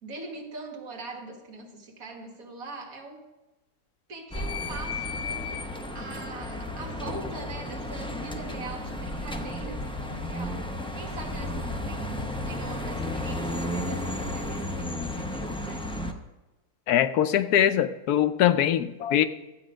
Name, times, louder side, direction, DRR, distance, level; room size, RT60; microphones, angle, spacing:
voice 1, 0.0-3.2 4.1-15.8, right 2 dB, 65° right, 2 dB, 1.9 m, -42 dB
sound 1, 4.3-16.1, left 1 dB, 5° left, 0.4 m, -33 dB
voice 2, 16.9-19.3, left 10 dB, 85° left, 11 dB, 1.1 m, -22 dB
13.0 x 8.6 x 5.1 m, 1.0 s
omnidirectional pair, 1.6 m